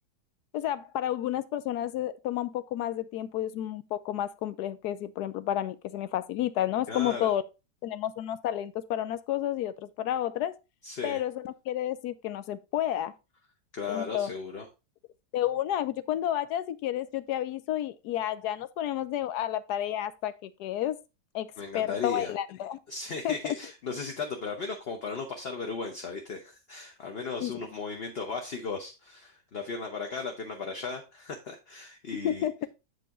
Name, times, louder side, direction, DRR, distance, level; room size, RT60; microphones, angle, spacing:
voice 1, 0.5-7.4 7.8-10.6 11.0-13.1 13.9-14.3 15.3-21.0 21.3-21.5 21.7-22.8 23.2-23.6 27.4-27.5 32.2-32.7, left 12 dB, 70° left, 1.1 m, -31 dB
voice 2, 6.9-7.3 10.8-11.2 13.7-14.7 21.6-22.3 22.9-32.5, left 4 dB, 45° left, 0.9 m, -36 dB
7.6 x 5.4 x 3.6 m
omnidirectional pair, 1.9 m